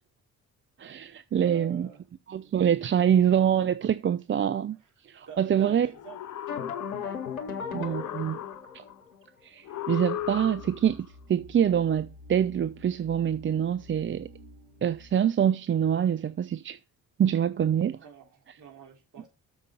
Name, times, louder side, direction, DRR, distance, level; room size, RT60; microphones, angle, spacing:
voice 1, 0.8-1.9 2.3-4.8 5.1-5.9 7.7-8.4 8.7-8.8 9.4-14.3 14.8-16.8 17.2-18.0, right 9 dB, 30° right, 0.6 m, -25 dB
voice 2, 1.3-2.0 4.7-4.9 5.3-6.2 17.9-19.3, right 7 dB, 45° right, 3.7 m, -46 dB
sound 1, 5.9-7.3 7.7-8.9 9.6-10.9, left 12 dB, 45° left, 0.7 m, -37 dB
sound 2, 6.5-9.2, left 6 dB, 90° left, 0.9 m, -36 dB
sound 3, 10.1-15.1, left 1 dB, 75° right, 1.9 m, -50 dB
7.1 x 5.1 x 6.6 m
hypercardioid pair, 45°, 41 cm